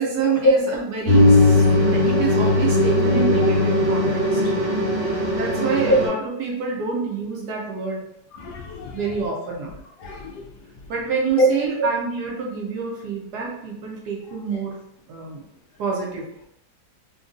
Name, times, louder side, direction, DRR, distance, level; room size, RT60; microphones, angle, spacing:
voice 1, 0.0-4.5 5.4-8.0 8.9-9.7 10.9-14.8 15.1-15.4 15.8-16.3, right 5 dB, 70° right, -2 dB, 1.1 m, -27 dB
sound 1, 1.1-6.1, left 2 dB, 90° right, 1.9 m, -18 dB
voice 2, 8.3-9.0 10.0-10.4 11.4-11.5, equal, 70° left, -1 dB, 1.1 m, -22 dB
3.7 x 2.2 x 2.4 m, 0.76 s
omnidirectional pair, 2.0 m